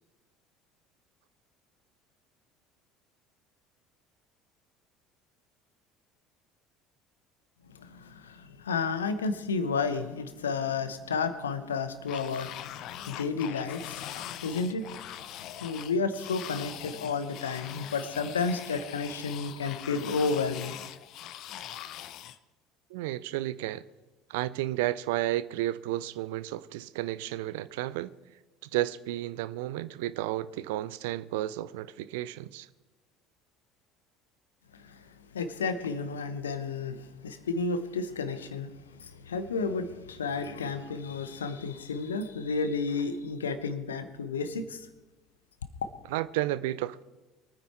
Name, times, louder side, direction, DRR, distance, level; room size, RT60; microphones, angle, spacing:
voice 1, 7.7-14.9 15.6-20.8 34.8-35.0 35.3-44.9, left 4 dB, 80° left, 1.0 m, -32 dB
sound 1, 12.1-22.4, left 11 dB, 55° left, 0.7 m, -42 dB
voice 2, 22.9-23.8 24.3-28.1 28.6-32.7 46.1-47.0, right 15 dB, 65° right, 0.5 m, -32 dB
23.0 x 9.6 x 4.5 m
figure-of-eight pair, 60°, 0 cm